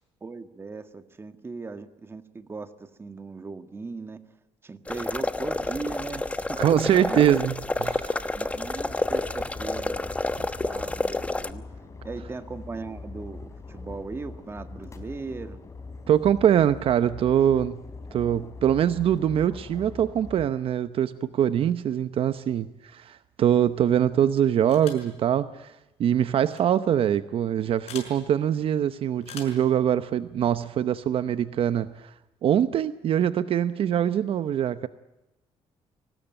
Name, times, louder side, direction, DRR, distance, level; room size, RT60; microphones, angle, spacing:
voice 1, 0.2-4.2 4.6-6.6 6.9-7.3 8.3-10.1 10.6-11.6 12.0-15.6, right 4 dB, 20° right, 10 dB, 1.6 m, -38 dB
sound 1, 4.9-11.5, left 2 dB, 10° left, 1.1 m, -29 dB
voice 2, 6.6-8.2 16.1-17.8 18.1-25.7 26.0-32.1 32.4-34.9, right 10 dB, 60° right, 13 dB, 0.9 m, -23 dB
sound 2, 8.5-20.5, left 3 dB, 30° left, 3.9 m, -42 dB
sound 3, 24.7-25.1 26.4-26.6 27.9-28.1 29.2-29.7, left 7 dB, 75° left, 5.9 m, -41 dB
24.0 x 19.0 x 8.9 m, 0.96 s
cardioid pair, 140°, 11 cm